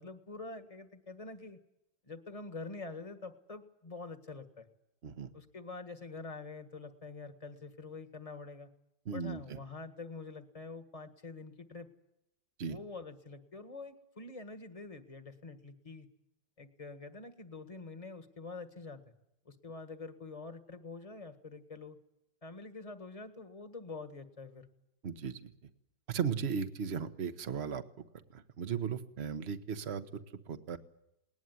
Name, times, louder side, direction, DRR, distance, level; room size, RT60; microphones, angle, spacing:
voice 1, 0.0-1.6 2.1-4.7 5.3-8.7 9.1-11.9 12.6-16.1 16.6-19.0 19.4-22.0 22.4-24.7, left 3 dB, 20° left, 8 dB, 1.6 m, -46 dB
voice 2, 9.1-9.4 12.6-12.8 25.0-25.5 26.1-27.8 28.3-30.1 30.5-30.8, right 6 dB, 40° right, 10 dB, 1.3 m, -36 dB
20.5 x 19.5 x 9.6 m, 0.82 s
omnidirectional pair, 2.0 m